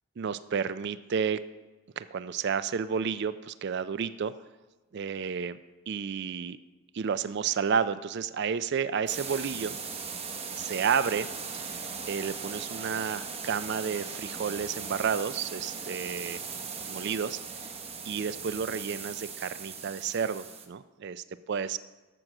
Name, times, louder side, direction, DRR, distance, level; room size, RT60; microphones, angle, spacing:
voice 1, 0.2-1.4 2.0-4.3 4.9-5.6 5.9-6.6 6.9-9.8 10.6-11.3 11.5-11.8 12.1-16.4 16.9-17.7 18.1-21.8, right 6 dB, 50° right, 14 dB, 0.4 m, -31 dB
sound 1, 9.1-20.7, right 5 dB, 25° right, 0.8 m, -39 dB
12.5 x 6.1 x 6.4 m, 1.2 s
head